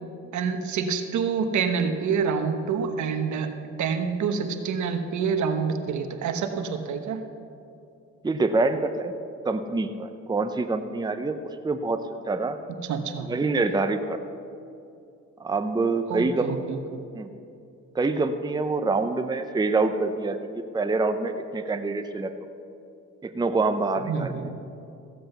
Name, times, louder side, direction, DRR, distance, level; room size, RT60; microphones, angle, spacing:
voice 1, 0.3-3.5 3.8-7.2 12.7-13.3 16.1-16.8 24.1-24.5, right 6 dB, 70° right, 7 dB, 1.2 m, -27 dB
voice 2, 8.2-9.1 9.4-11.4 11.6-12.0 12.3-12.6 13.2-14.2 15.4-16.5 17.1-17.3 17.9-22.3 23.2-24.3, right 3 dB, 15° right, 8 dB, 0.7 m, -26 dB
15.0 x 7.8 x 6.7 m, 2.6 s
cardioid pair, 90°, 30 cm